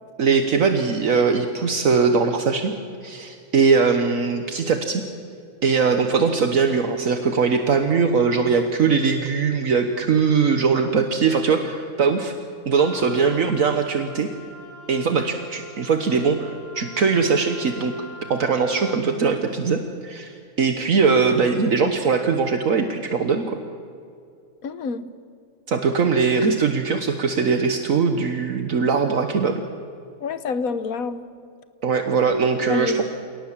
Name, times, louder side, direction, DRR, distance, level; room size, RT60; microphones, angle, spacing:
voice 1, 0.2-2.7 3.0-5.0 5.6-12.3 12.7-14.3 14.9-17.9 18.3-23.6 25.7-29.6 31.8-33.0, right 5 dB, 65° right, 6 dB, 1.6 m, -21 dB
Wind instrument woodwind instrument, 12.8-19.0, left 1 dB, 10° right, 3.7 m, -43 dB
voice 2, 24.6-25.0 30.2-31.3 32.7-33.0, left 5 dB, 75° left, 13 dB, 1.5 m, -27 dB
28.0 x 18.0 x 7.4 m, 2.5 s
omnidirectional pair, 1.5 m